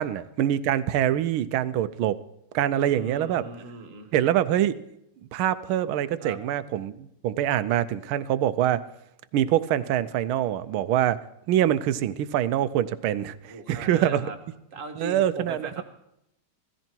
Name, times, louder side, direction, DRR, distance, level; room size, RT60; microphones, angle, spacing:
voice 1, 0.0-2.2 2.5-3.5 4.1-4.8 5.3-8.8 9.3-11.2 11.5-13.3 13.7-14.2 15.0-15.8, right 11 dB, 80° right, 14 dB, 1.5 m, -24 dB
voice 2, 2.7-4.1 6.2-6.4 13.4-14.4 14.7-15.8, right 3 dB, 40° right, 5 dB, 1.6 m, -39 dB
16.0 x 14.0 x 4.5 m, 0.81 s
omnidirectional pair, 2.3 m